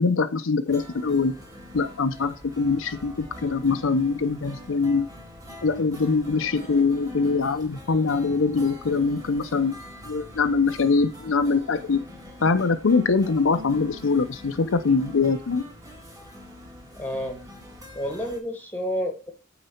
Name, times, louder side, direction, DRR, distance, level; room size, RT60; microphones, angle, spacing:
voice 1, 0.0-1.4 1.7-5.1 5.6-9.7 10.0-12.0 12.4-15.6, left 4 dB, 70° left, 8 dB, 0.6 m, -23 dB
sound 1, 0.7-18.4, left 1 dB, 20° right, 1.8 m, -44 dB
voice 2, 16.9-17.4 17.9-19.3, equal, 10° left, 5 dB, 1.3 m, -30 dB
8.7 x 4.0 x 5.6 m, 0.37 s
head